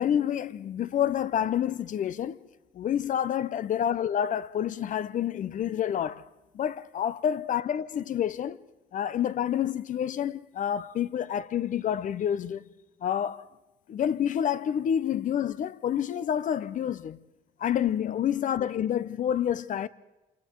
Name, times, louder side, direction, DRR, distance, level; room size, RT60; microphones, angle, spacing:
voice 1, 0.0-2.4 2.7-6.2 6.5-8.6 8.9-12.7 13.0-13.5 13.9-17.2 17.6-19.9, left 9 dB, 50° left, 0.8 m, -28 dB
28.5 x 27.0 x 4.6 m
cardioid pair, 110°, 17 cm